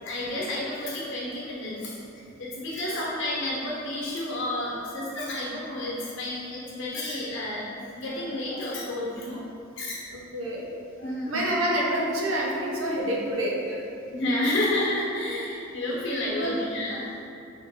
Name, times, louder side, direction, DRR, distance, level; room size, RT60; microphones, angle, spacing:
voice 1, 0.0-1.9 2.4-9.4 9.8-10.0 11.0-11.5 14.1-17.1, left 1 dB, 60° left, -6 dB, 0.9 m, -30 dB
voice 2, 10.1-10.6 11.3-13.8 16.4-16.5, right 1 dB, 75° right, -3 dB, 0.7 m, -27 dB
4.4 x 2.5 x 2.8 m, 2.7 s
head